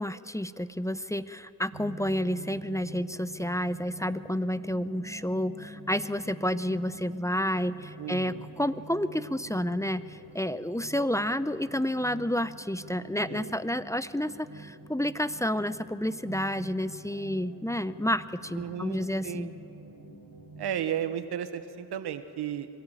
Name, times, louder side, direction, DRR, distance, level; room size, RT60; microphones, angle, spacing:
voice 1, 0.0-19.5, equal, 10° left, 14 dB, 0.7 m, -30 dB
sound 1, 1.7-20.8, right 1 dB, 65° right, 4.4 m, -47 dB
voice 2, 8.0-8.5 13.3-13.5 18.6-19.5 20.6-22.7, right 9 dB, 90° right, 11 dB, 1.0 m, -34 dB
23.5 x 12.5 x 9.1 m, 2.5 s
supercardioid pair, 40°, 38 cm